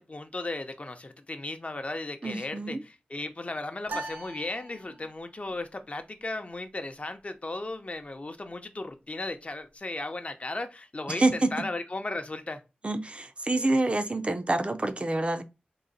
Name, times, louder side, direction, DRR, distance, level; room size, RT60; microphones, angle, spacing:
voice 1, 0.0-12.6, left 2 dB, 40° left, 0.6 m, -36 dB
voice 2, 2.2-2.8 11.1-11.7 12.8-15.4, right 2 dB, 35° right, 0.5 m, -27 dB
sound 1, 3.9-5.3, right 2 dB, 75° right, 1.0 m, -40 dB
3.8 x 2.1 x 3.9 m
wide cardioid pair, 50°, 3 cm